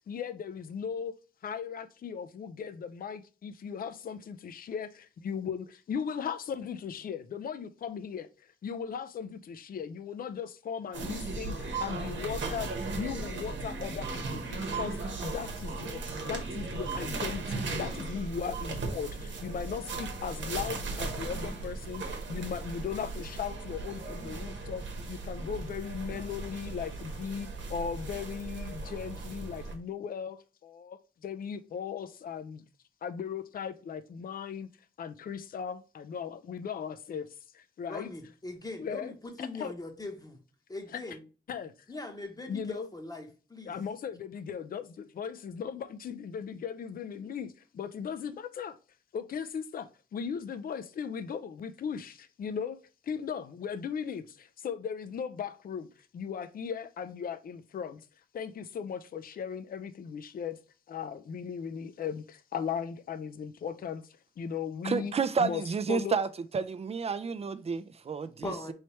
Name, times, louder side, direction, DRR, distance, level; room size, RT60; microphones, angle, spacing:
voice 1, 0.1-1.2 1.4-8.3 8.6-32.6 33.0-34.7 35.0-38.1 38.8-39.1 39.4-39.7 40.9-41.0 41.5-41.7 42.5-42.9 43.7-48.8 49.1-55.9 56.1-58.0 58.3-60.6 60.9-64.0 64.4-65.1 65.4-65.6 65.9-66.2, left 7 dB, 50° left, 0.4 m, -37 dB
sound 1, 10.9-29.7, right 3 dB, 90° right, 1.0 m, -37 dB
voice 2, 37.8-40.4 40.7-41.2 41.9-43.8 68.4-68.7, left 2 dB, 20° left, 0.9 m, -41 dB
voice 3, 64.8-66.3 66.5-68.7, right 5 dB, 35° right, 0.4 m, -30 dB
4.3 x 3.2 x 2.9 m
wide cardioid pair, 100°, 19 cm